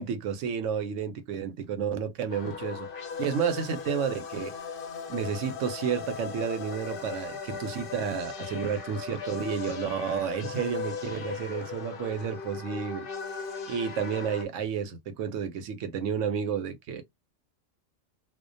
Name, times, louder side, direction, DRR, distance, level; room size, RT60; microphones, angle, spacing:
voice 1, 0.0-4.5 5.1-13.1 13.7-17.0, right 7 dB, 80° right, 0.9 m, -31 dB
sound 1, 2.3-14.4, left 6 dB, 55° left, 0.6 m, -38 dB
2.3 x 2.2 x 2.5 m
omnidirectional pair, 1.3 m